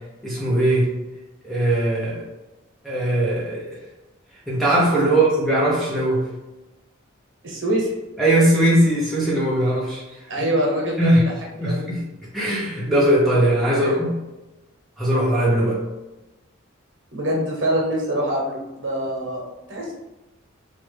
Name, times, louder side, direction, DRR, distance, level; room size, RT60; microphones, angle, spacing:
voice 1, 0.2-0.9 1.4-2.2 2.8-3.7 4.5-6.3 8.2-10.0 10.4-10.5 11.0-11.3 11.6-12.0 12.3-14.2 15.0-15.8, right 1 dB, ahead, -7 dB, 0.6 m, -19 dB
voice 2, 7.4-7.9 10.3-11.2 11.7-11.9 13.8-14.0 17.1-19.9, right 1 dB, 70° right, -2 dB, 1.0 m, -25 dB
3.1 x 2.4 x 3.2 m, 1.1 s
head